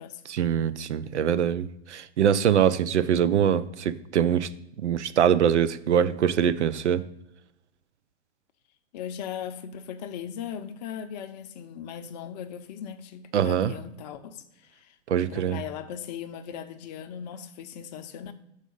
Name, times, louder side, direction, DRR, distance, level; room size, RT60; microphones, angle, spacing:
voice 1, 0.3-4.5 4.8-7.0 13.3-13.7 15.1-15.6, right 9 dB, 75° right, 0.6 m, -23 dB
voice 2, 8.9-18.3, left 8 dB, 40° left, 0.6 m, -38 dB
6.6 x 4.7 x 5.3 m
hypercardioid pair, 115°, 35 cm